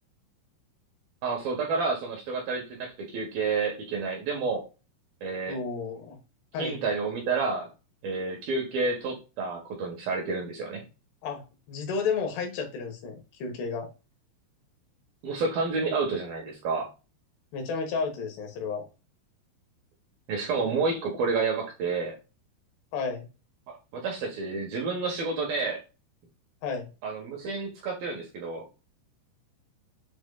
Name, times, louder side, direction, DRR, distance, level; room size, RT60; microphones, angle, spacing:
voice 1, 1.2-4.6 5.2-5.6 6.6-7.7 8.0-10.8 15.2-16.9 20.3-22.2 23.7-25.8 27.0-28.6, right 4 dB, 70° right, 1 dB, 2.4 m, -30 dB
voice 2, 5.5-6.2 6.5-6.8 11.2-11.4 11.7-13.9 17.5-18.8 22.9-23.3 26.6-26.9, left 5 dB, 65° left, 3 dB, 3.0 m, -32 dB
7.9 x 5.9 x 2.4 m, 0.30 s
omnidirectional pair, 6.0 m